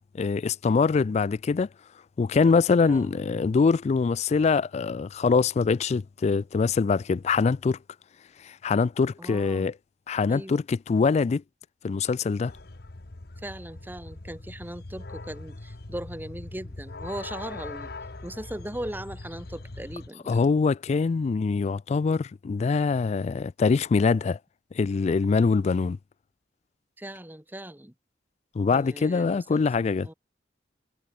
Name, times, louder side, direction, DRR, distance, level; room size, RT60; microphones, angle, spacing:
voice 1, 0.1-1.7 2.2-7.8 8.4-9.7 10.1-11.4 11.8-12.5 20.3-24.4 24.7-26.0 28.5-30.1, left 4 dB, 40° left, 0.3 m, -24 dB
voice 2, 2.8-3.2 9.2-9.7 10.3-10.6 13.4-17.9 18.2-20.4 27.0-27.9 28.7-30.1, right 1 dB, 10° right, 2.2 m, -39 dB
sound 1, 12.5-20.1, left 2 dB, 60° left, 1.2 m, -41 dB
head